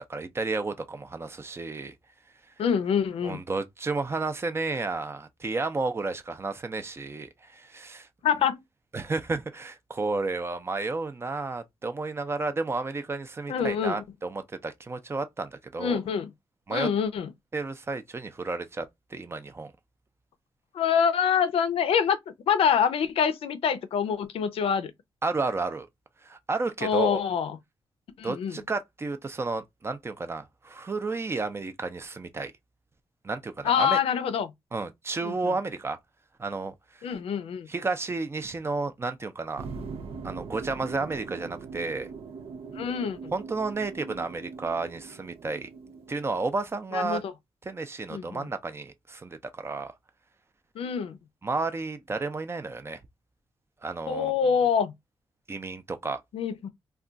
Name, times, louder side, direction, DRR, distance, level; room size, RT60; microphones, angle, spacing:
voice 1, 0.1-1.9 3.2-8.1 8.9-16.0 16.7-16.9 17.5-18.9 19.1-19.7 25.2-25.9 26.2-27.2 28.2-32.5 33.2-34.0 34.7-36.0 36.4-36.7 37.7-39.7 40.2-42.1 43.3-45.7 46.1-47.2 47.7-49.9 51.4-53.0 53.8-54.5 55.5-56.2, right 3 dB, 25° right, 0.4 m, -32 dB
voice 2, 2.6-3.4 8.2-8.6 13.5-14.0 15.8-16.3 16.7-17.3 20.7-22.2 22.5-24.9 26.8-27.5 28.2-28.6 33.6-34.5 35.2-35.3 37.0-37.7 42.8-43.2 46.9-47.2 48.1-48.5 50.8-51.2 54.1-54.9 56.3-56.7, left 7 dB, 85° left, 0.5 m, -25 dB
sound 1, 39.6-46.5, right 5 dB, 85° right, 0.5 m, -41 dB
2.3 x 2.3 x 3.8 m
wide cardioid pair, 110°, 10 cm